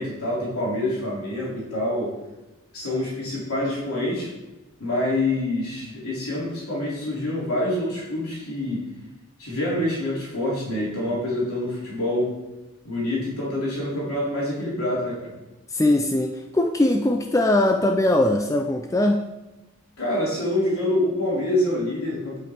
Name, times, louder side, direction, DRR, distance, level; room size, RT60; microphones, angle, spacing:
voice 1, 0.0-2.2 2.7-4.3 4.8-8.8 9.4-12.4 12.8-15.3 20.0-22.4, left 1 dB, 80° left, -6 dB, 3.3 m, -26 dB
voice 2, 15.7-19.2, left 1 dB, 15° left, 4 dB, 0.3 m, -21 dB
9.6 x 6.0 x 4.4 m, 1.0 s
head